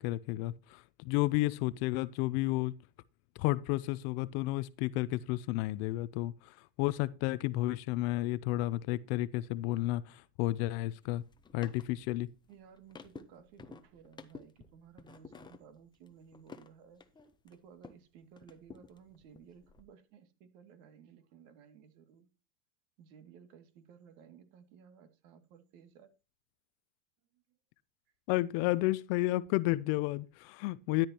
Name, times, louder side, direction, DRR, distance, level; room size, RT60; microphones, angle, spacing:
voice 1, 0.0-2.7 3.4-11.2 11.5-12.3 28.3-31.1, left 17 dB, 40° left, 0.5 m, -32 dB
sound 1, 11.0-18.1 18.4-19.8, left 5 dB, 10° left, 0.7 m, -53 dB
voice 2, 12.5-17.1 17.4-22.3 23.0-26.1, right 7 dB, 55° right, 2.4 m, -57 dB
13.0 x 10.5 x 2.9 m
supercardioid pair, 135°, 47 cm